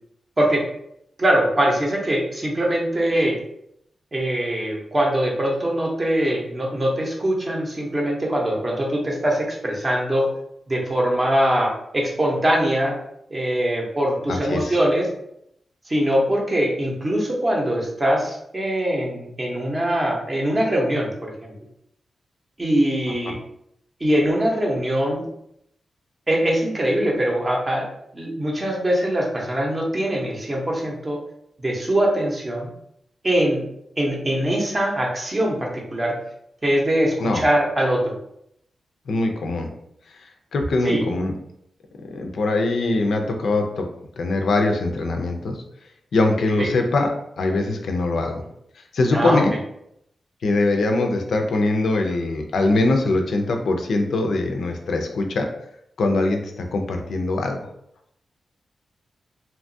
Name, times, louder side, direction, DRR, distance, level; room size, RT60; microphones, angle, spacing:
voice 1, 1.2-3.4 4.1-10.3 10.7-12.9 13.3-15.1 15.9-21.5 22.6-23.4 24.0-25.2 26.3-27.9 28.1-31.2 31.6-32.7 33.2-33.6 34.0-36.2 36.6-38.1 40.8-41.0 46.6-46.7 49.1-49.4, right 1 dB, 25° right, -1 dB, 0.6 m, -22 dB
voice 2, 14.3-14.7 37.2-37.4 39.1-39.7 40.5-41.3 42.1-43.9 44.2-45.6 46.1-47.1 47.4-48.4 48.9-49.5 50.4-55.5 56.0-57.6, left 2 dB, 70° left, 3 dB, 0.4 m, -22 dB
2.8 x 2.2 x 2.6 m, 0.75 s
wide cardioid pair, 135°, 0 cm